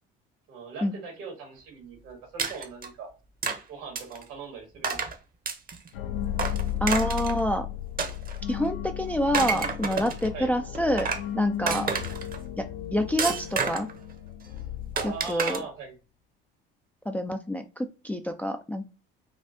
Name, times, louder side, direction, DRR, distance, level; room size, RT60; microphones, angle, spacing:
voice 1, 0.5-3.1 3.7-5.0 10.3-10.7 11.8-12.2 14.9-15.9, right 5 dB, 75° right, 3 dB, 1.7 m, -40 dB
sound 1, 2.4-2.9 3.4-3.6 3.9-4.2 4.8-5.1 5.5-5.9 6.4-7.4 8.0-8.7 9.2-10.3 10.7-11.3 11.7-12.4 13.2-14.0 15.0-15.6, right 5 dB, 30° right, 0.8 m, -29 dB
sound 2, 5.9-15.6, left 11 dB, 80° left, 0.5 m, -35 dB
voice 2, 6.8-7.7 8.5-11.1 11.3-11.9 12.6-13.9 15.0-15.6 17.1-18.9, equal, 5° left, 6 dB, 0.3 m, -27 dB
4.2 x 2.4 x 2.7 m, 0.30 s
hypercardioid pair, 65°, 29 cm